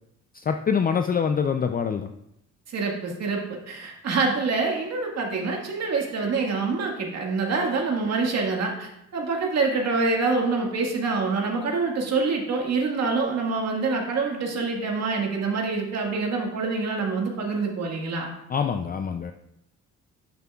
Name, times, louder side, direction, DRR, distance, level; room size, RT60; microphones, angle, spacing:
voice 1, 0.3-2.1 18.5-19.3, left 6 dB, 30° left, 7 dB, 0.5 m, -25 dB
voice 2, 2.7-18.3, right 4 dB, 60° right, 0 dB, 1.8 m, -26 dB
11.5 x 7.4 x 2.4 m, 0.80 s
cardioid pair, 90°, 30 cm